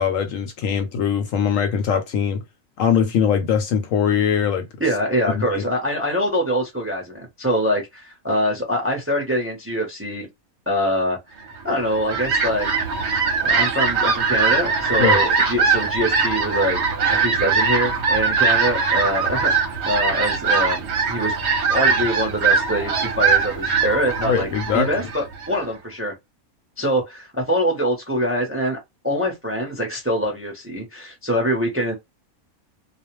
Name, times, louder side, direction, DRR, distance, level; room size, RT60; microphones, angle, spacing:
voice 1, 0.0-2.4 2.8-4.7 5.3-5.6 15.0-15.2 24.3-24.9, left 7 dB, 70° left, 0.9 m, -21 dB
voice 2, 4.8-10.3 10.7-11.2 11.6-12.8 13.4-21.3 21.7-26.1 26.8-28.8 29.0-31.9, equal, 15° right, 0.5 m, -24 dB
Fowl, 11.7-25.6, right 5 dB, 55° right, 0.9 m, -21 dB
2.4 x 2.1 x 3.0 m
omnidirectional pair, 1.6 m